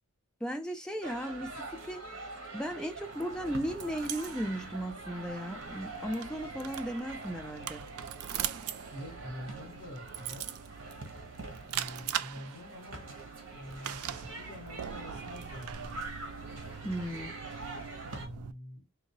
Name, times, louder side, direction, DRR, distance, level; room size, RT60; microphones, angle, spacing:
voice 1, 0.4-2.0 2.5-7.9 16.8-17.3, equal, 5° left, 0.5 m, -36 dB
sound 1, 1.0-18.3, right 3 dB, 60° right, 1.3 m, -45 dB
sound 2, 3.1-18.5, right 9 dB, 90° right, 0.4 m, -42 dB
voice 2, 8.9-10.5 11.6-13.2 13.5-16.0 18.1-18.8, left 1 dB, 50° left, 1.5 m, -46 dB
3.7 x 2.7 x 3.0 m
head